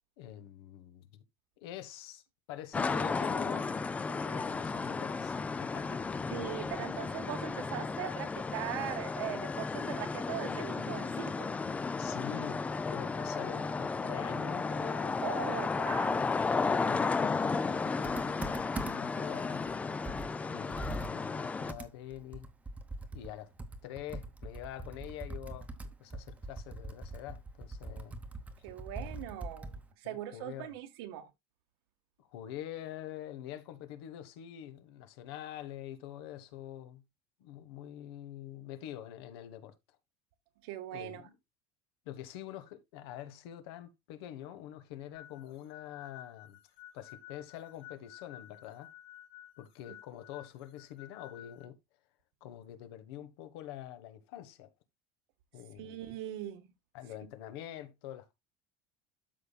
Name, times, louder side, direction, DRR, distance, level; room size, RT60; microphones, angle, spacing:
voice 1, 0.2-1.2 1.6-2.2 2.5-3.7 4.1-6.3 11.9-15.6 16.5-19.6 20.5-22.5 23.1-23.5 23.8-28.2 30.0-30.7 32.2-37.0 37.4-39.7 40.9-41.3 42.0-46.6 46.9-48.9 49.6-51.8 52.4-54.7 55.5-56.1 56.9-58.3, left 12 dB, 85° left, 1.4 m, -46 dB
sound 1, 2.7-21.7, left 4 dB, 10° left, 0.4 m, -34 dB
voice 2, 6.3-11.5 15.2-16.3 28.6-31.3 40.6-41.2 55.8-56.6, right 12 dB, 80° right, 1.6 m, -40 dB
Computer keyboard, 18.0-19.2 19.6-19.7 20.0-29.9, right 2 dB, 10° right, 0.9 m, -43 dB
sound 2, 45.1-51.7, left 13 dB, 55° left, 3.9 m, -53 dB
13.0 x 5.5 x 2.3 m
cardioid pair, 165°, 13 cm